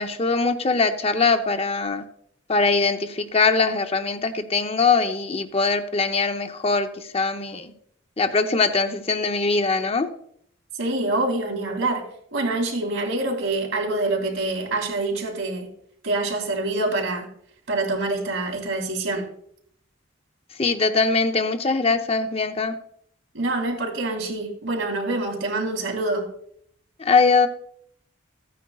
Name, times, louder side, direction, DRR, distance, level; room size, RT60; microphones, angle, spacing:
voice 1, 0.0-2.0 2.5-6.9 7.1-7.7 8.2-10.1 20.6-22.7 27.0-27.5, left 4 dB, 30° left, 0.7 m, -22 dB
voice 2, 10.7-15.7 16.0-17.3 17.7-19.3 23.3-26.3, right 2 dB, 90° right, 2.8 m, -26 dB
15.0 x 9.3 x 2.4 m
head